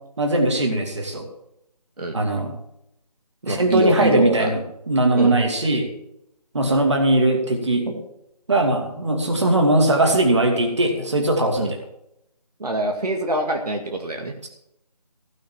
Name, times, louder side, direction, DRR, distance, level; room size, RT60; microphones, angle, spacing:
voice 1, 0.2-1.2 2.1-2.5 3.5-5.9 6.5-8.0 8.5-11.8, right 1 dB, 45° right, 3 dB, 2.6 m, -20 dB
voice 2, 3.4-4.5 5.1-5.4 11.6-11.7 12.6-14.3, right 1 dB, 70° right, 2 dB, 2.0 m, -24 dB
16.5 x 6.3 x 7.4 m, 0.81 s
figure-of-eight pair, 180°, 21 cm